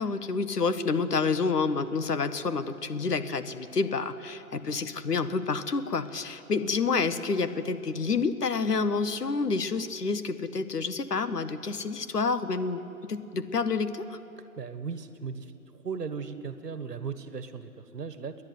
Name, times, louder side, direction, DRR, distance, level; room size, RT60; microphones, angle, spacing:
voice 1, 0.0-12.8 13.1-14.2, left 4 dB, 80° left, 11 dB, 1.6 m, -28 dB
voice 2, 14.6-15.5 15.8-18.4, right 5 dB, 90° right, 11 dB, 1.5 m, -37 dB
30.0 x 10.5 x 9.4 m, 2.8 s
hypercardioid pair, 175°, 46 cm